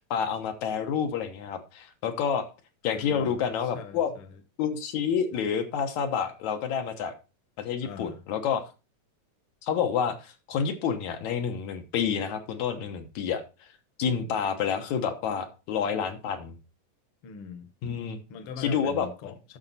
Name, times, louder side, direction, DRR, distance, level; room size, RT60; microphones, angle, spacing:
voice 1, 0.0-2.5 2.8-4.1 4.6-7.1 7.6-8.6 9.6-13.4 14.0-16.6 17.8-18.2 18.6-19.1, left 7 dB, 75° left, 2.5 m, -29 dB
voice 2, 2.9-3.4 3.7-4.4 7.8-8.2 17.2-17.7 18.3-19.6, left 6 dB, 55° left, 1.8 m, -42 dB
11.5 x 6.7 x 4.1 m
omnidirectional pair, 3.3 m